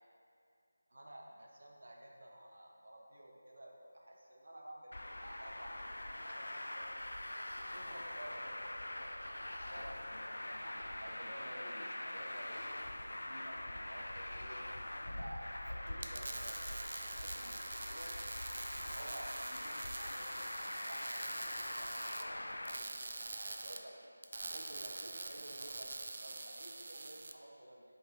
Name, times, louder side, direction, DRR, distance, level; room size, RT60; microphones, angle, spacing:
voice 1, 0.9-5.8 6.0-6.9 7.7-10.0 10.6-14.6 15.0-18.1 18.8-23.9 24.3-26.0 26.2-27.8, right 1 dB, 75° right, -1 dB, 1.1 m, -53 dB
Traffic noise roadway noise, 4.9-22.8, left 1 dB, 85° left, 0.4 m, -43 dB
sound 1, 15.9-27.3, right 3 dB, 45° right, 0.4 m, -45 dB
8.1 x 5.2 x 3.0 m, 2.4 s
figure-of-eight pair, 170°, 0 cm